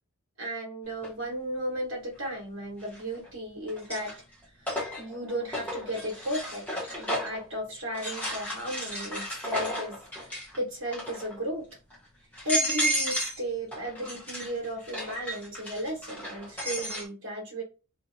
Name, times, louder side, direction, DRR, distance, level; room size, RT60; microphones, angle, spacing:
voice 1, 0.4-4.1 4.6-4.7 5.0-6.7 7.0-11.7 12.4-17.6, right 1 dB, 70° right, 1.3 m, -35 dB
sound 1, 1.0-1.1 2.8-3.3 3.7-7.4 7.9-10.6 10.9-11.4 11.9-12.0 12.3-13.4 13.7-17.1, equal, 5° left, 1.0 m, -33 dB
2.7 x 2.6 x 2.5 m
head